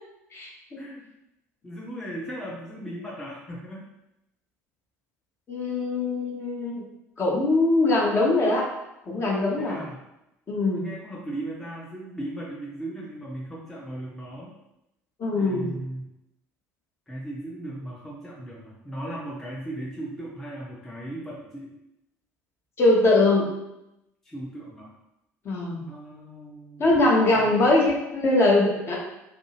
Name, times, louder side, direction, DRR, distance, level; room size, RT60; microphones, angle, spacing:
voice 1, 0.3-0.8 5.5-6.8 7.2-8.7 9.1-9.8 10.5-10.9 15.2-15.7 22.8-23.5 25.4-25.8 26.8-29.0, left 2 dB, 30° left, -3 dB, 0.8 m, -22 dB
voice 2, 1.6-3.8 9.6-10.0 10.7-14.5 15.3-16.1 17.1-21.7 24.2-24.9 25.9-27.0 27.2-27.7, right 1 dB, 5° left, -5 dB, 0.6 m, -37 dB
2.6 x 2.6 x 2.9 m, 0.87 s
figure-of-eight pair, 60°, 8 cm